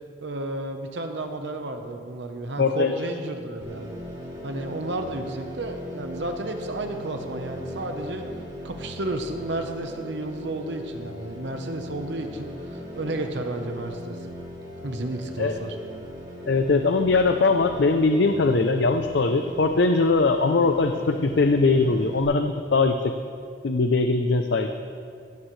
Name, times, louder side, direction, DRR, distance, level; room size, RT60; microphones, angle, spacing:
voice 1, 0.2-4.0 4.4-8.3 8.6-14.2 14.8-15.8, right 2 dB, 65° right, 5 dB, 0.9 m, -32 dB
voice 2, 2.6-2.9 15.4-15.5 16.5-23.1 23.6-24.7, left 3 dB, 65° left, 6 dB, 0.5 m, -21 dB
sound 1, 3.6-22.2, equal, 20° right, 3.2 m, -39 dB
16.0 x 14.5 x 3.2 m, 2.4 s
head